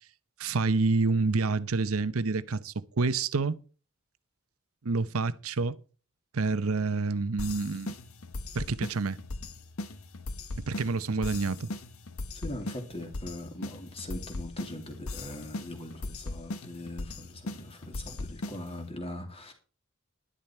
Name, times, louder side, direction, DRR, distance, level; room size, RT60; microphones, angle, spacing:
voice 1, 0.4-3.6 4.8-5.8 6.3-8.0 8.5-9.2 10.7-11.7, right 3 dB, 85° right, 0.8 m, -28 dB
sound 1, 7.4-18.9, left 2 dB, 90° left, 1.0 m, -39 dB
voice 2, 12.3-19.5, left 1 dB, 30° left, 2.6 m, -41 dB
11.0 x 11.0 x 4.4 m
head